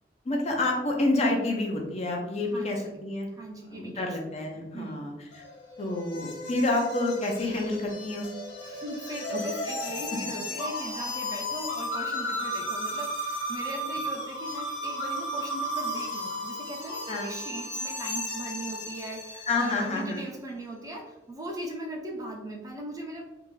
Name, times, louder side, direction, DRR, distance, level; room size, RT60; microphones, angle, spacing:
voice 1, 0.3-3.3 3.7-5.1 5.8-8.3 17.1-17.3 19.5-20.2, left 2 dB, 35° left, 1 dB, 0.6 m, -28 dB
voice 2, 2.5-2.9 3.3-5.0 8.6-23.3, right 1 dB, 20° right, 0 dB, 0.5 m, -39 dB
sound 1, 5.3-19.9, left 1 dB, 75° left, 1.0 m, -34 dB
3.4 x 2.5 x 3.2 m, 0.98 s
head